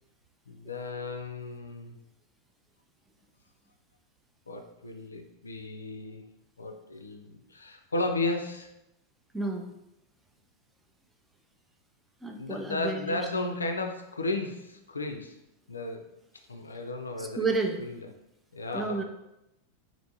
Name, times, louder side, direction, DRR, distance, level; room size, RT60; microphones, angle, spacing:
voice 1, 0.5-2.0 4.5-6.3 6.6-8.7 12.4-15.4 15.7-16.1 16.5-17.5 17.8-18.1 18.5-19.0, left 2 dB, 75° left, 4 dB, 0.3 m, -34 dB
voice 2, 9.3-9.7 12.2-13.2 17.2-17.8 18.7-19.0, right 3 dB, 5° right, 3 dB, 0.4 m, -31 dB
3.3 x 2.5 x 2.8 m, 0.86 s
figure-of-eight pair, 90°, 0 cm